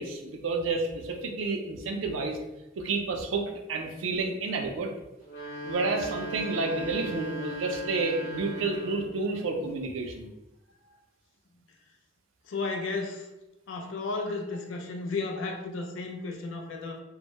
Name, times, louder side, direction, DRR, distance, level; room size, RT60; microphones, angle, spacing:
voice 1, 0.0-2.4 2.8-3.4 3.7-4.9 5.6-10.3, right 3 dB, 85° right, 3 dB, 0.4 m, -30 dB
sound 1, 5.2-9.2, right 2 dB, 40° left, 0.9 m, -37 dB
voice 2, 12.4-13.3 13.7-17.0, left 3 dB, 80° left, 3 dB, 0.4 m, -33 dB
2.2 x 2.0 x 2.8 m, 0.96 s
head